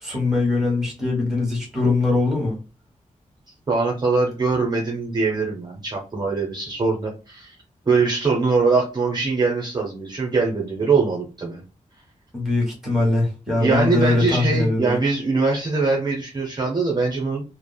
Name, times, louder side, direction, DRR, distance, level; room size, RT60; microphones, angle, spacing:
voice 1, 0.0-2.6 12.3-14.9, left 3 dB, 5° right, -1 dB, 1.2 m, -21 dB
voice 2, 3.7-7.5 7.9-11.6 13.6-17.4, right 4 dB, 30° right, -1 dB, 0.7 m, -22 dB
3.2 x 2.0 x 2.2 m, 0.31 s
wide cardioid pair, 170°, 14 cm